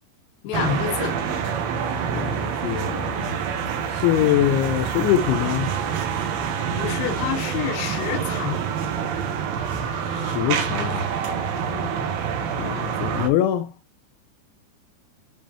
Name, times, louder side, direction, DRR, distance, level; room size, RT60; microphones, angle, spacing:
voice 1, 0.4-1.1 6.7-8.6 10.8-10.9 11.7-11.9, left 9 dB, 70° left, 2.5 m, -28 dB
sound 1, 0.5-13.3, right 7 dB, 90° right, 3.6 m, -27 dB
voice 2, 2.1-3.4 3.9-5.7 10.1-11.1 12.6-13.7, left 12 dB, 85° left, 2.8 m, -23 dB
10.0 x 3.5 x 2.9 m
omnidirectional pair, 5.4 m